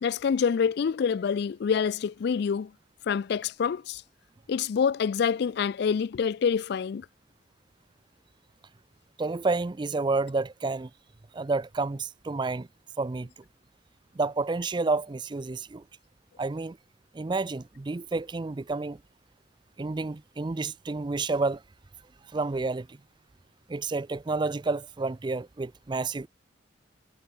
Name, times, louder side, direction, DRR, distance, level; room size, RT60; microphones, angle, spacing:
voice 1, 0.0-2.7 3.1-4.0 4.5-7.1, left 6 dB, 60° left, 0.3 m, -26 dB
voice 2, 9.2-10.9 11.3-12.7 13.0-13.3 14.1-15.8 16.4-16.8 17.1-19.0 19.8-21.6 22.3-23.0 23.7-26.3, right 3 dB, 25° right, 0.4 m, -30 dB
head